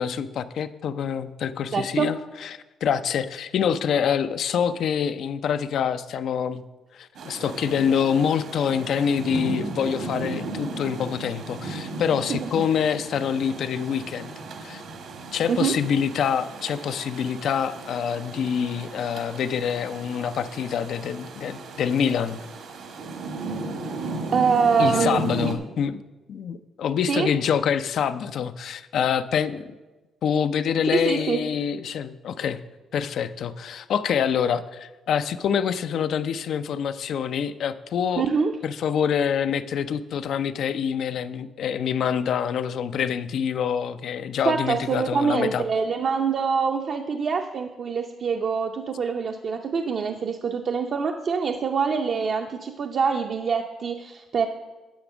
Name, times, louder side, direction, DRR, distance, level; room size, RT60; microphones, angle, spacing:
voice 1, 0.0-6.6 6.9-14.4 14.6-14.8 15.3-22.4 24.8-26.0 26.3-29.7 30.2-32.6 32.9-38.2 38.6-45.6, left 7 dB, 70° left, 12 dB, 0.4 m, -26 dB
voice 2, 1.7-2.1 12.3-12.7 15.5-15.8 24.3-25.2 27.1-27.3 30.9-31.5 38.2-38.6 44.4-54.5, right 5 dB, 55° right, 4 dB, 0.6 m, -25 dB
Rain, 7.1-25.5, right 3 dB, 75° right, 1.5 m, -35 dB
10.0 x 6.1 x 6.2 m, 1.2 s
cardioid pair, 90°, 0 cm